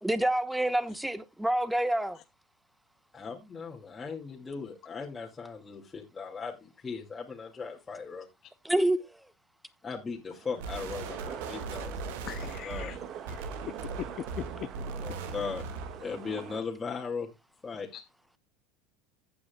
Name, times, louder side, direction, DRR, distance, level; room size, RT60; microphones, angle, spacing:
voice 1, 0.0-2.2 8.6-9.0, right 1 dB, 5° right, 1.2 m, -27 dB
voice 2, 3.1-8.3 9.8-12.0 12.6-12.9 15.0-15.6 16.0-17.3 17.6-17.9, left 5 dB, 20° left, 2.3 m, -38 dB
sound 1, 10.3-16.6, right 9 dB, 50° right, 1.5 m, -43 dB
sound 2, 10.6-16.1, right 4 dB, 75° right, 1.8 m, -39 dB
voice 3, 12.2-13.0 13.3-13.5 14.0-14.7 17.9-18.0, left 12 dB, 45° left, 0.5 m, -40 dB
15.0 x 8.7 x 2.3 m
supercardioid pair, 100°, 0 cm